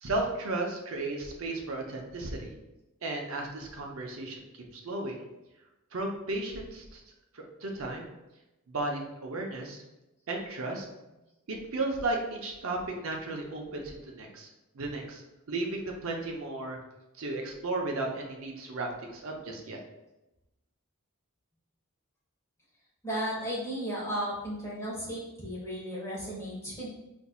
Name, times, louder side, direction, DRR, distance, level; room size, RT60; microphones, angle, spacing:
voice 1, 0.0-2.5 3.0-4.4 4.7-5.3 5.9-7.0 7.3-8.1 8.7-9.8 10.3-10.9 11.5-14.5 14.7-15.2 15.5-16.8 17.2-19.8, right 2 dB, 70° right, 1 dB, 0.6 m, -34 dB
voice 2, 23.0-26.9, equal, 15° left, -7 dB, 1.1 m, -34 dB
4.2 x 2.5 x 2.3 m, 0.97 s
head